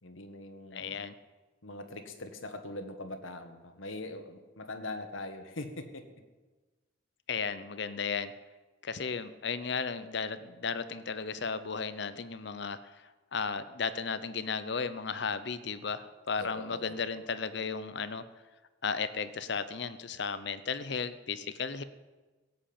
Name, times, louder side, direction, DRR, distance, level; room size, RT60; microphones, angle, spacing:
voice 1, 0.0-1.1 1.6-6.0 16.4-17.1, left 2 dB, 80° left, 7 dB, 1.5 m, -42 dB
voice 2, 0.7-1.1 7.3-8.3 8.8-12.8 13.3-18.2 18.8-21.8, left 5 dB, 60° left, 14 dB, 0.7 m, -34 dB
16.5 x 7.8 x 8.7 m, 1.3 s
head